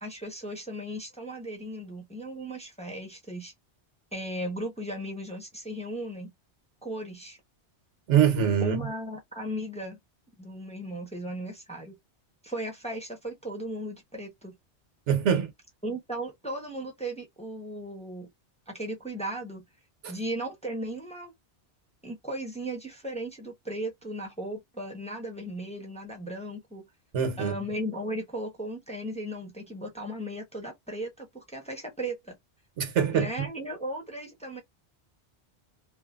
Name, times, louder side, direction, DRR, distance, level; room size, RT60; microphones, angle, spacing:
voice 1, 0.0-3.5 4.1-6.3 6.8-7.4 8.6-10.0 10.4-12.0 12.4-14.5 15.8-18.3 18.7-19.6 20.1-21.3 22.0-26.9 27.4-32.4 33.1-34.6, right 1 dB, 5° left, 0.8 m, -36 dB
voice 2, 8.1-8.8 15.1-15.5 27.1-27.6 32.8-33.3, right 8 dB, 90° right, 1.2 m, -23 dB
3.1 x 2.0 x 2.3 m
omnidirectional pair, 1.2 m